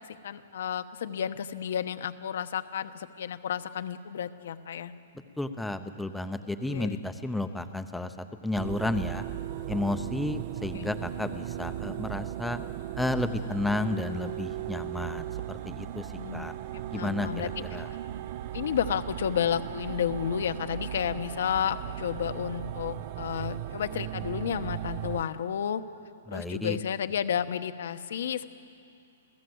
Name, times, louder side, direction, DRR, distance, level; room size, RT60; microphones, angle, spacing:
voice 1, 0.2-4.9 6.7-7.0 10.7-10.9 16.1-17.5 18.5-25.8 26.3-28.5, left 8 dB, 60° left, 11 dB, 1.0 m, -31 dB
voice 2, 5.4-8.1 8.4-9.2 9.7-12.6 13.0-16.5 16.9-17.9 26.3-26.8, left 2 dB, ahead, 9 dB, 0.7 m, -32 dB
sound 1, 8.6-25.2, right 13 dB, 35° right, 0.5 m, -37 dB
27.5 x 17.0 x 7.9 m, 2.6 s
hypercardioid pair, 170°, 0 cm